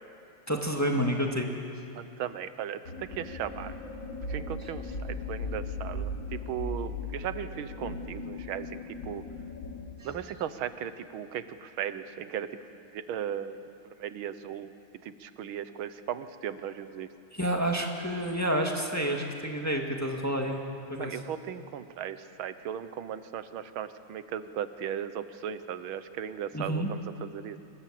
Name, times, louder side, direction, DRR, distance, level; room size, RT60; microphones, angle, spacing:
voice 1, 0.5-1.5 10.0-10.1 17.3-20.6 20.9-21.2 26.5-26.9, equal, 10° left, 1 dB, 1.9 m, -29 dB
voice 2, 1.9-3.7 4.3-9.2 10.0-13.6 14.0-14.7 15.0-17.1 21.0-27.6, right 9 dB, 90° right, 12 dB, 1.7 m, -37 dB
sound 1, 2.9-9.8, left 2 dB, 60° left, 4.2 m, -37 dB
26.5 x 21.5 x 7.7 m, 2.7 s
omnidirectional pair, 2.2 m